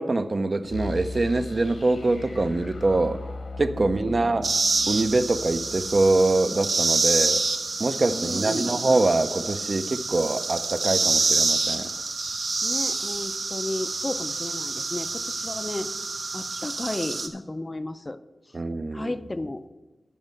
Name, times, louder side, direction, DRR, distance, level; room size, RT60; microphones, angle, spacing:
voice 1, 0.0-3.2 3.6-4.5 4.9-7.4 7.8-11.9 18.5-19.1, right 2 dB, 45° right, 9 dB, 0.5 m, -24 dB
sound 1, 0.7-7.5, left 2 dB, 85° left, 1.4 m, -38 dB
voice 2, 3.8-4.2 8.1-8.8 11.9-12.0 12.6-18.2 18.5-18.6 18.9-19.7, left 2 dB, 25° left, 11 dB, 0.4 m, -34 dB
sound 2, 4.4-17.3, right 3 dB, 75° right, 1.0 m, -27 dB
11.0 x 5.3 x 6.6 m, 1.1 s
wide cardioid pair, 100°, 0 cm